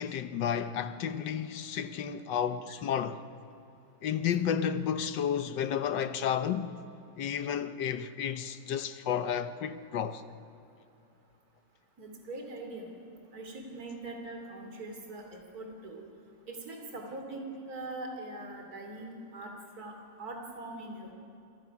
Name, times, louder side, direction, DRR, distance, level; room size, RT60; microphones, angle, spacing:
voice 1, 0.0-3.2 4.0-6.8 7.2-10.2, left 8 dB, 80° left, 1.6 m, -32 dB
voice 2, 12.0-12.9 13.3-16.0 16.5-21.1, right 2 dB, 55° right, 3.3 m, -42 dB
28.5 x 25.5 x 5.9 m
omnidirectional pair, 1.9 m